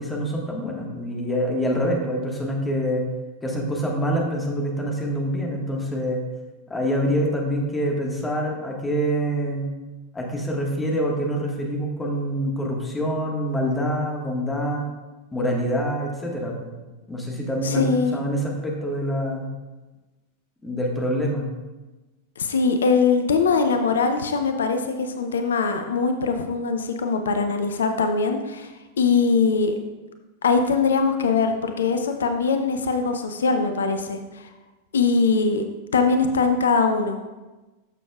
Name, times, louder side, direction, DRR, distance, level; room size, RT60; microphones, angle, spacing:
voice 1, 0.0-3.0 3.4-6.2 6.7-9.6 10.1-14.9 15.3-16.7 17.1-19.5 20.6-21.5, equal, 10° left, -1 dB, 1.6 m, -26 dB
voice 2, 17.6-18.2 22.4-29.7 30.4-34.5 34.9-35.6 35.9-37.2, left 4 dB, 65° left, 6 dB, 0.6 m, -22 dB
11.5 x 7.0 x 2.4 m, 1.2 s
figure-of-eight pair, 90°, 0 cm